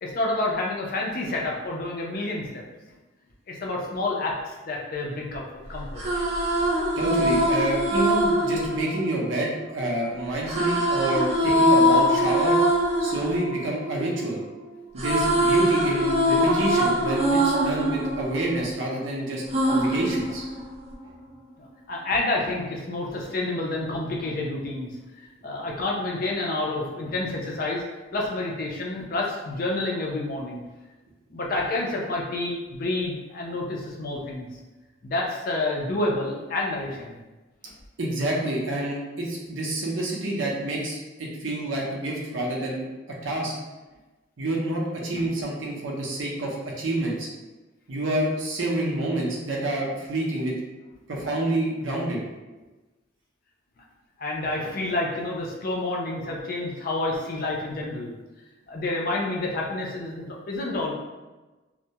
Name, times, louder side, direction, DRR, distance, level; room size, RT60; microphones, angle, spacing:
voice 1, 0.0-2.6 3.5-6.0 21.6-25.0 25.4-27.8 28.1-30.6 31.3-34.5 35.0-37.2 37.6-37.7 45.1-45.2 54.2-58.1 58.7-60.9, left 2 dB, 45° left, -2 dB, 0.4 m, -29 dB
sound 1, 5.8-9.9 10.5-14.5 14.8-19.0 19.5-21.0, equal, 30° right, 0.4 m, -23 dB
voice 2, 7.0-12.6 13.0-14.4 14.9-20.4 38.0-42.9 43.2-43.5 44.4-47.3 47.9-50.6 51.1-52.2, right 1 dB, 80° right, -2 dB, 0.6 m, -28 dB
2.2 x 2.0 x 2.7 m, 1.2 s
head